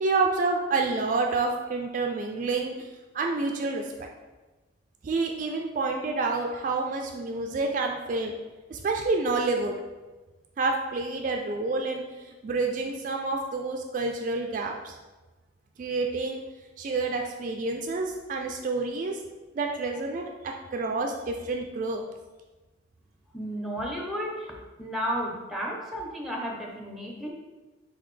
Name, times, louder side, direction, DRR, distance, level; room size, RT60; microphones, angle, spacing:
voice 1, 0.0-2.9 3.1-4.1 5.0-8.3 8.7-9.8 10.6-14.9 15.8-16.4 16.8-19.2 19.6-22.0, right 3 dB, 45° right, 2 dB, 0.3 m, -28 dB
voice 2, 23.3-24.5 24.8-27.3, equal, ahead, -1 dB, 0.7 m, -33 dB
4.2 x 3.9 x 3.2 m, 1.2 s
head